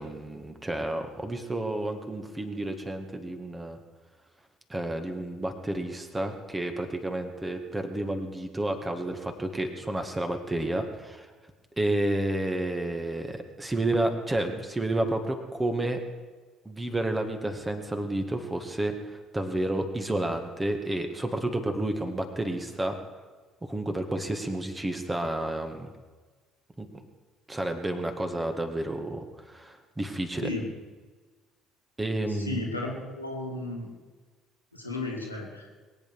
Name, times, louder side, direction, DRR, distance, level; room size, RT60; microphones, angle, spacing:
voice 1, 0.0-3.8 4.7-11.3 11.8-16.0 16.7-22.9 23.7-25.9 26.8-26.9 27.5-30.5 32.0-32.6, right 1 dB, 15° right, 6 dB, 2.0 m, -30 dB
voice 2, 32.3-33.9 34.7-35.7, left 2 dB, 90° left, -2 dB, 2.3 m, -34 dB
22.0 x 8.8 x 6.3 m, 1.4 s
figure-of-eight pair, 50°, 0 cm